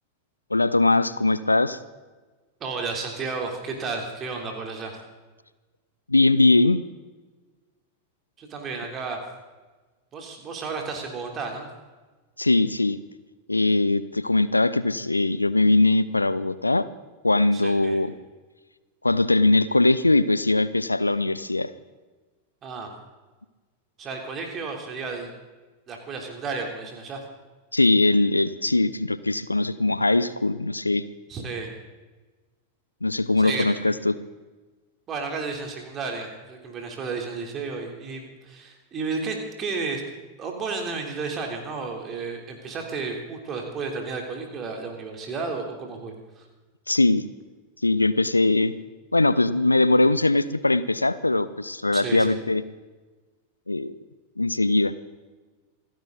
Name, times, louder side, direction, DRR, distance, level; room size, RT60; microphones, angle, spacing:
voice 1, 0.5-1.8 6.1-6.8 12.4-13.0 13.5-16.9 17.2-18.1 19.0-21.7 27.7-31.0 33.0-34.2 46.9-47.2 47.8-48.7 49.1-52.6 53.7-54.0 54.4-54.9, left 2 dB, 85° left, 16 dB, 0.6 m, -21 dB
voice 2, 2.6-4.9 8.4-9.2 10.1-11.7 17.5-18.0 22.6-22.9 24.0-25.3 25.9-27.2 31.3-31.7 33.4-33.8 35.1-40.0 40.4-46.4 51.9-52.3, right 4 dB, 25° right, 2 dB, 3.4 m, -32 dB
27.0 x 10.5 x 4.0 m, 1.3 s
figure-of-eight pair, 90°, 0 cm